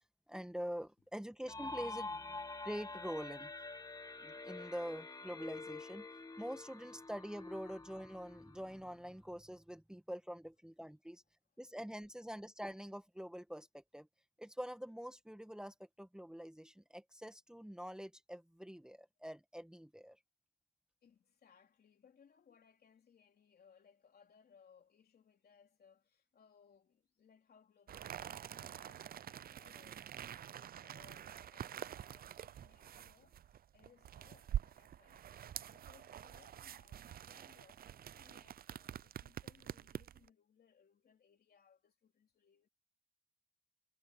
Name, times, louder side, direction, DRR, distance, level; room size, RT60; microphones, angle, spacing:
voice 1, 0.3-3.5 4.2-6.1 6.4-11.2 11.6-14.1 14.4-20.2, equal, 5° right, 1.2 m, -45 dB
sound 1, 1.5-9.1, left 3 dB, 25° left, 1.2 m, -47 dB
voice 2, 21.0-42.7, left 7 dB, 80° left, 3.4 m, -67 dB
Handling A Rubber Mask, 27.9-40.3, right 10 dB, 70° right, 0.4 m, -46 dB
wide cardioid pair, 170°, 16 cm